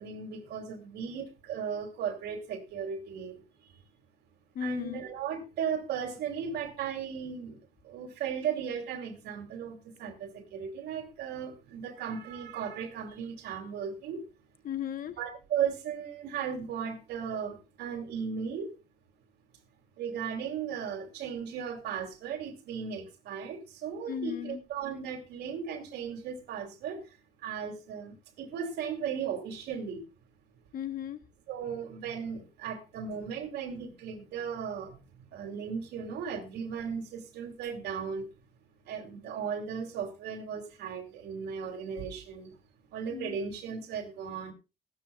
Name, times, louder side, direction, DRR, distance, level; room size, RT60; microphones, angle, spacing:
voice 1, 0.0-3.8 4.6-7.6 7.8-14.2 15.2-18.7 20.0-30.1 31.5-38.3 38.8-42.6 42.9-44.5, right 7 dB, 85° right, 2.8 m, -36 dB
voice 2, 4.5-5.0 14.6-15.2 24.1-24.6 30.7-31.2 43.1-43.4, left 8 dB, 55° left, 1.1 m, -35 dB
15.5 x 12.5 x 2.4 m
cardioid pair, 125°, 17 cm